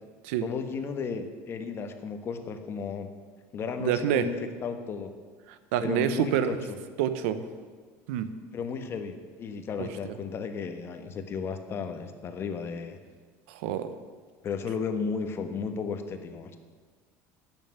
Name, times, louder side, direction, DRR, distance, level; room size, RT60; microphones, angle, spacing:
voice 1, 0.4-3.1 3.5-4.4 4.6-5.1 5.8-6.6 8.5-13.0 14.4-16.6, left 5 dB, 35° left, 7 dB, 1.4 m, -34 dB
voice 2, 3.8-4.2 5.7-6.6 7.0-7.5 8.1-8.3 9.8-10.1 13.5-13.9, right 10 dB, 85° right, 11 dB, 1.0 m, -27 dB
11.5 x 7.1 x 9.8 m, 1.5 s
cardioid pair, 130°, 7 cm